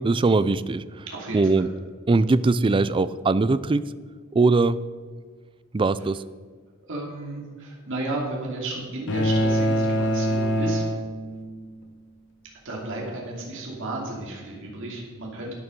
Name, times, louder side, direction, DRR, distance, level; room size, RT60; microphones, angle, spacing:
voice 1, 0.0-1.0 1.3-1.7 2.1-3.9 4.3-4.8 5.7-6.2, right 3 dB, 25° right, 15 dB, 0.4 m, -21 dB
voice 2, 1.1-1.7 6.9-10.8 12.6-15.5, right 2 dB, 65° right, -2 dB, 2.6 m, -33 dB
sound 1, 9.1-11.6, equal, 60° left, 1.0 m, -24 dB
12.5 x 9.5 x 5.3 m, 1.6 s
head